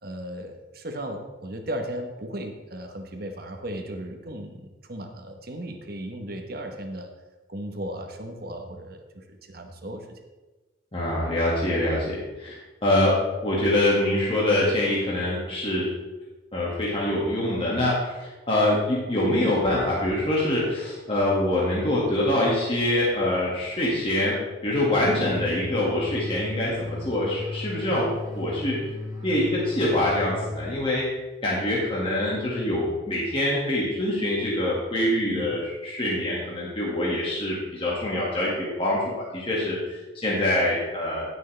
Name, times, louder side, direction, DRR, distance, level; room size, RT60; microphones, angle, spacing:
voice 1, 0.0-7.1 7.5-10.2 35.3-35.5, right 1 dB, 50° right, 4 dB, 1.1 m, -36 dB
voice 2, 10.9-13.2 13.4-15.9 16.5-24.4 24.6-28.8 29.2-31.0 31.4-39.0 39.3-41.2, left 1 dB, 25° left, -6 dB, 1.9 m, -25 dB
sound 1, 25.0-31.1, left 2 dB, 20° right, 1.7 m, -36 dB
16.5 x 6.3 x 3.3 m, 1.2 s
head